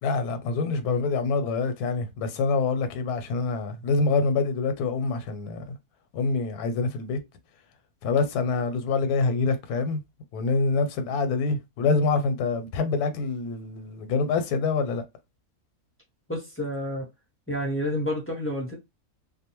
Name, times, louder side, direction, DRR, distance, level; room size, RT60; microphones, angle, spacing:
voice 1, 0.0-5.6 6.1-7.2 8.0-10.0 10.3-15.0, left 4 dB, 85° left, 1.1 m, -26 dB
voice 2, 16.3-17.1 17.5-18.8, equal, 20° left, 0.3 m, -29 dB
2.6 x 2.1 x 2.9 m
omnidirectional pair, 1.6 m